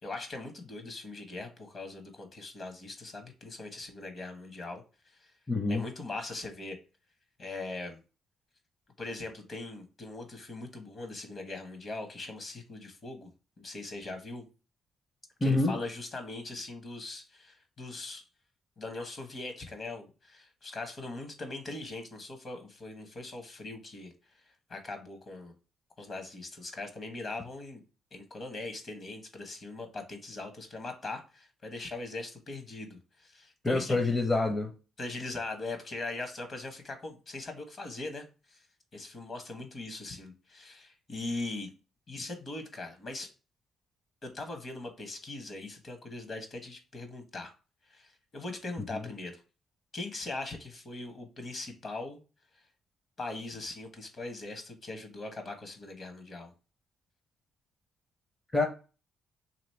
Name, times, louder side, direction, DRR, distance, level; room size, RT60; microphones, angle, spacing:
voice 1, 0.0-5.3 5.7-6.8 7.4-8.0 9.0-13.3 13.6-14.4 15.4-18.2 18.8-24.1 24.7-25.5 26.0-27.8 28.1-34.0 35.0-38.6 38.9-41.7 42.1-43.3 44.2-47.5 47.9-49.4 49.9-52.2 53.2-56.5, left 2 dB, 45° left, 6 dB, 1.1 m, -40 dB
voice 2, 5.5-5.8 15.4-15.7 33.6-34.7 58.5-58.7, left 3 dB, 20° left, 3 dB, 0.6 m, -26 dB
3.0 x 2.9 x 4.3 m, 0.34 s
cardioid pair, 90°, 0 cm